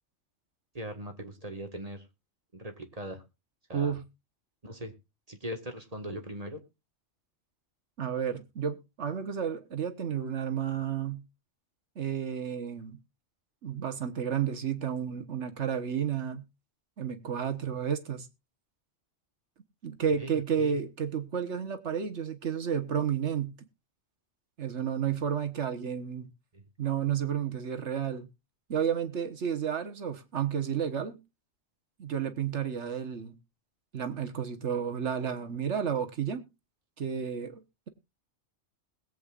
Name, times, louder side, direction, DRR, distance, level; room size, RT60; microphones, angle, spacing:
voice 1, 0.7-2.0 2.5-3.2 3.7-4.0 4.6-4.9 5.3-6.6 20.2-20.8 26.5-26.6, right 1 dB, 35° right, 1.7 m, -40 dB
voice 2, 3.7-4.0 8.0-11.2 12.0-13.0 13.6-16.4 17.0-18.3 19.8-23.5 24.6-26.3 26.8-28.3 28.7-31.2 32.0-33.4 33.9-36.4 37.0-37.6, right 8 dB, 75° right, 1.5 m, -31 dB
21.0 x 8.2 x 2.4 m
omnidirectional pair, 1.2 m